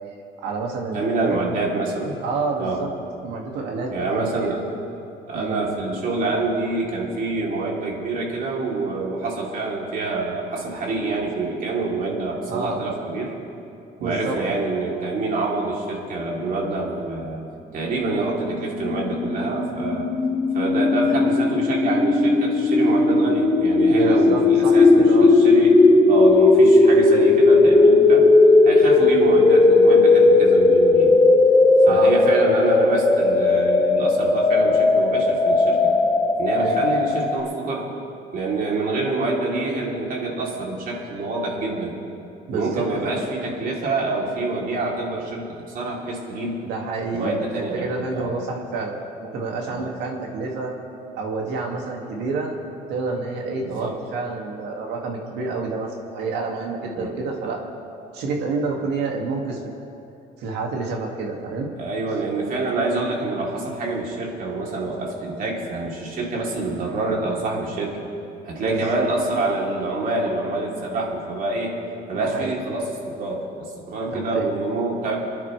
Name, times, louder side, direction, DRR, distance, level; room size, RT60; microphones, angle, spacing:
voice 1, 0.4-1.4 2.2-2.9 3.2-4.5 5.3-5.6 12.5-13.0 14.0-14.4 23.9-25.4 31.8-32.3 36.6-36.9 42.5-43.2 46.6-49.0 49.3-50.7 51.2-52.5 52.9-57.6 58.1-59.6 60.4-61.7 68.6-69.0 72.1-72.5 74.1-74.5, right 4 dB, 85° right, 0 dB, 2.3 m, -28 dB
voice 2, 0.9-2.1 2.6-2.8 3.9-4.6 4.9-13.3 14.0-17.4 17.7-20.1 20.5-25.8 26.1-28.3 28.6-31.2 31.9-36.0 36.4-37.9 38.3-42.0 42.5-46.6 47.1-48.3 49.7-49.9 53.6-53.9 57.0-57.1 61.8-67.9 68.4-71.8 72.1-75.2, right 2 dB, 55° right, -2 dB, 3.3 m, -26 dB
sound 1, 18.2-37.4, left 3 dB, 20° left, 1.2 m, -16 dB
30.0 x 10.5 x 3.3 m, 2.6 s
cardioid pair, 110°, 17 cm